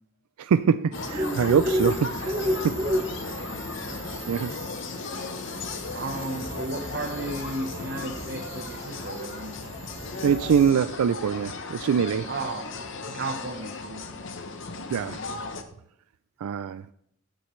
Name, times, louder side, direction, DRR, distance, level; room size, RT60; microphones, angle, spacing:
voice 1, 0.4-2.9 3.3-3.5 4.3-4.6 10.2-12.3 14.9-15.3 16.4-16.8, right 7 dB, 90° right, 0.4 m, -24 dB
sound 1, 0.9-15.6, left 3 dB, 55° left, 0.9 m, -36 dB
sound 2, 0.9-10.7, equal, 15° right, 0.7 m, -33 dB
voice 2, 5.9-9.6 12.3-12.8 13.1-14.1, right 2 dB, 45° right, 0.9 m, -34 dB
16.0 x 9.1 x 3.2 m
head